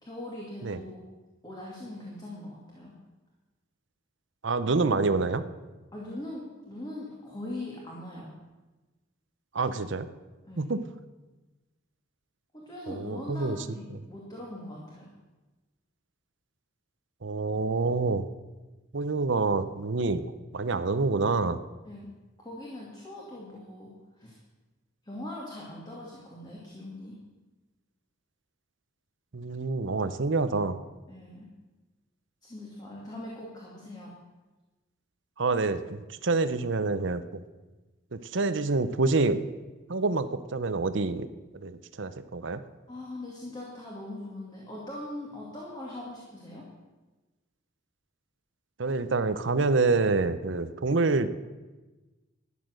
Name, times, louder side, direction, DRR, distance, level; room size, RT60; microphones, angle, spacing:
voice 1, 0.0-1.0 1.4-2.9 5.9-8.3 10.4-10.7 12.5-15.1 21.8-22.1 22.4-24.4 25.0-27.2 31.1-31.5 32.4-34.1 42.9-46.7, left 1 dB, 20° left, -3 dB, 2.4 m, -41 dB
voice 2, 4.4-5.4 9.5-10.1 10.6-10.8 12.9-13.6 17.2-18.3 18.9-21.6 29.3-30.8 35.4-37.2 38.1-39.4 39.9-41.3 41.5-42.6 48.8-51.3, right 3 dB, 65° right, 12 dB, 0.8 m, -27 dB
13.0 x 10.5 x 6.5 m, 1.2 s
head